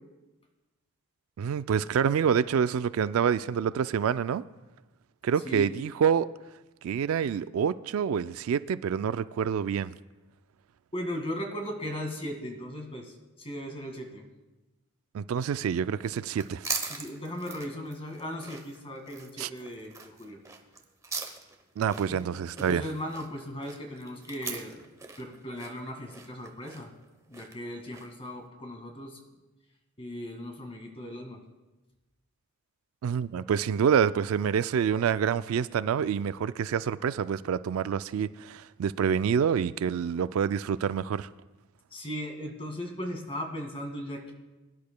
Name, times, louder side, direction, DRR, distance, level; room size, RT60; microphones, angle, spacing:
voice 1, 1.4-4.4 5.2-6.3 6.8-9.9 15.1-16.7 19.4-19.5 21.8-22.9 33.0-41.3, right 7 dB, 70° right, 0.3 m, -27 dB
voice 2, 10.9-14.2 16.9-20.4 22.1-22.2 22.6-24.8 25.2-26.9 27.3-29.2 30.0-31.4 41.9-44.3, equal, 25° left, 1.8 m, -37 dB
sound 1, 16.0-28.3, right 4 dB, 15° right, 0.8 m, -41 dB
21.5 x 10.5 x 2.2 m
head